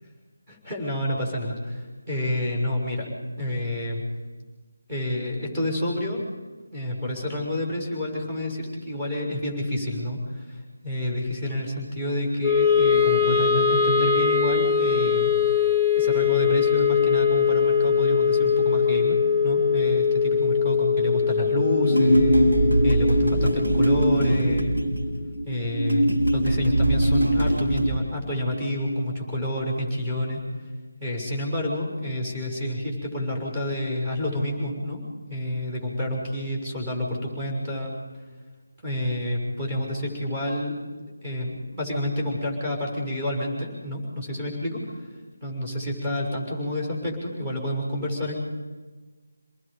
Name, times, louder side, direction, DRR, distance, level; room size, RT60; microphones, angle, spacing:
voice 1, 0.5-3.1 3.4-4.0 4.9-6.2 6.7-19.1 19.4-24.7 25.4-30.4 31.0-35.0 35.3-37.9 38.8-40.8 41.2-45.1 45.4-48.4, left 1 dB, 20° right, -2 dB, 6.4 m, -29 dB
Wind instrument woodwind instrument, 12.4-24.7, left 6 dB, ahead, 0.8 m, -22 dB
sound 1, 21.8-27.9, right 1 dB, 75° right, 5.0 m, -21 dB
28.0 x 20.5 x 5.2 m, 1.3 s
figure-of-eight pair, 160°, 0 cm